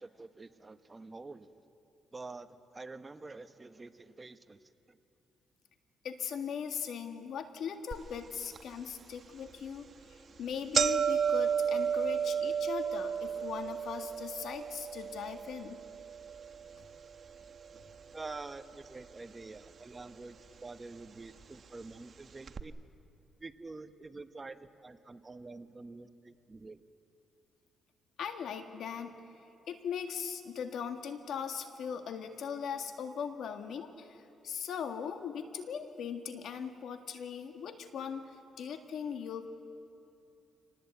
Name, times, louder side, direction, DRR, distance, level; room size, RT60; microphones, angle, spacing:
voice 1, 0.0-1.5 2.1-4.6 4.9-5.0 18.1-22.7 23.4-26.8, right 3 dB, 25° right, 10 dB, 0.9 m, -47 dB
voice 2, 6.0-15.8 28.2-29.2 29.7-39.5, left 7 dB, 70° left, 6 dB, 1.7 m, -39 dB
sound 1, 7.9-8.0 8.6-8.7 9.5-9.7 10.0-10.1 10.4-18.6 18.8-19.6 20.4-20.5 21.4-21.5 21.8-21.9 22.5-22.6, right 7 dB, 45° right, 1.0 m, -33 dB
26.0 x 19.5 x 8.3 m, 2.7 s
cardioid pair, 90°, 0 cm